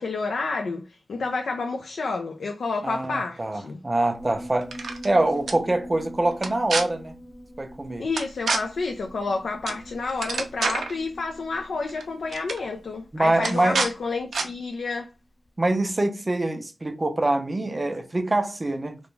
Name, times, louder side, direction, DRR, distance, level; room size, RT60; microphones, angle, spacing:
voice 1, 0.0-3.8 8.0-15.1, left 3 dB, 80° left, 0.3 m, -30 dB
voice 2, 2.8-4.7 5.0-7.1 7.6-8.1 13.1-13.8 15.6-19.0, right 2 dB, 25° right, 0.4 m, -24 dB
Piano, 4.1-14.9, equal, 40° left, 0.9 m, -44 dB
sound 1, 4.6-5.1 5.5-5.6 6.4-6.8 8.2-8.6 9.7-9.8 10.1-10.9 11.9-12.0 12.3-12.6 13.4-13.9 14.3-14.5, right 4 dB, 85° right, 0.4 m, -27 dB
2.4 x 2.1 x 3.0 m
wide cardioid pair, 110°, 0 cm